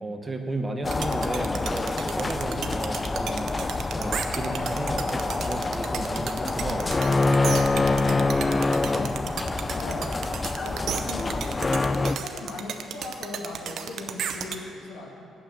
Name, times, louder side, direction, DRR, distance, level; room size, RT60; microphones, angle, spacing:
voice 1, 0.0-3.5 3.9-6.9, right 2 dB, 20° right, 4 dB, 1.0 m, -34 dB
sound 1, 0.8-12.2, left 3 dB, 25° left, 0.3 m, -26 dB
sound 2, 0.9-14.6, right 8 dB, 70° right, 0.6 m, -33 dB
voice 2, 7.7-10.3 10.6-15.2, left 2 dB, 85° left, -1 dB, 1.7 m, -38 dB
8.8 x 7.1 x 7.3 m, 2.4 s
cardioid pair, 90°, 0 cm